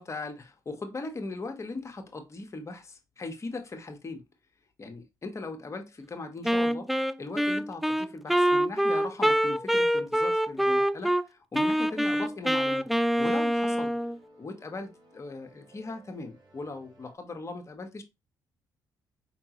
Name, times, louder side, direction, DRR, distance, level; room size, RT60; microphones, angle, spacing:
voice 1, 0.0-4.2 4.8-6.9 7.2-12.9 13.2-13.9 14.4-18.0, left 3 dB, 35° left, 1.3 m, -39 dB
Wind instrument woodwind instrument, 6.4-11.2 11.5-14.2, equal, ahead, 0.3 m, -25 dB
sound 1, 11.6-17.1, right 1 dB, 65° right, 2.3 m, -57 dB
4.8 x 3.7 x 3.0 m
supercardioid pair, 70°, 8 cm